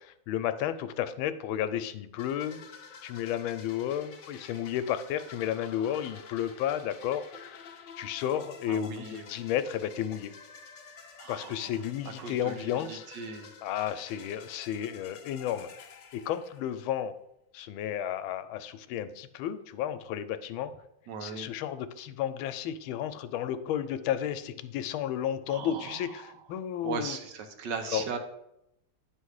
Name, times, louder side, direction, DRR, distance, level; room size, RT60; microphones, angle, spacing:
voice 1, 0.0-2.6 3.0-10.3 11.3-13.1 13.6-15.9 16.1-17.1 17.5-20.7 21.2-27.2 27.9-28.0, left 10 dB, 85° left, 11 dB, 1.4 m, -32 dB
sound 1, 2.2-17.0, left 5 dB, 70° left, 0.7 m, -50 dB
voice 2, 8.7-9.4 11.2-11.7 12.0-13.5 21.1-21.5 25.5-26.3 26.8-28.2, right 5 dB, 65° right, 5 dB, 1.3 m, -38 dB
9.6 x 3.3 x 6.3 m, 0.80 s
omnidirectional pair, 2.2 m